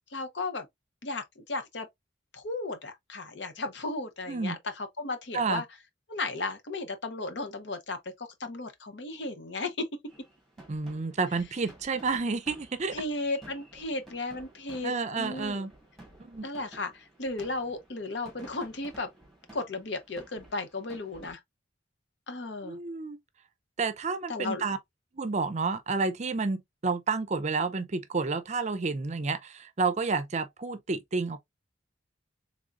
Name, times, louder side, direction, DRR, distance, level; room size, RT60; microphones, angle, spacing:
voice 1, 0.1-0.7 1.0-1.9 2.3-5.6 6.1-9.9 12.9-15.7 16.4-19.1 19.5-21.4 22.3-22.8 24.3-24.6, left 2 dB, 65° left, 0.8 m, -35 dB
voice 2, 4.3-4.6 5.3-5.6 10.7-12.9 14.8-15.7 16.2-16.5 22.6-23.2 23.8-24.8 25.1-31.4, right 4 dB, 40° right, 0.5 m, -30 dB
sound 1, 10.1-21.3, right 1 dB, ahead, 1.9 m, -53 dB
3.8 x 3.5 x 2.4 m
head